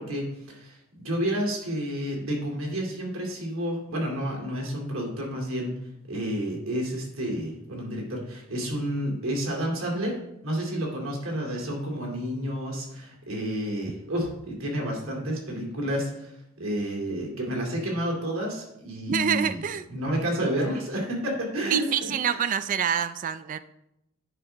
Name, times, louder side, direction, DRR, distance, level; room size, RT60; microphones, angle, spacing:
voice 1, 0.0-5.7 6.1-10.2 10.4-16.3 16.6-19.6 19.9-22.4, equal, 85° right, -1 dB, 2.5 m, -30 dB
voice 2, 19.1-19.8 21.6-23.6, right 8 dB, 40° right, 13 dB, 0.3 m, -27 dB
9.9 x 5.6 x 3.4 m, 0.84 s
head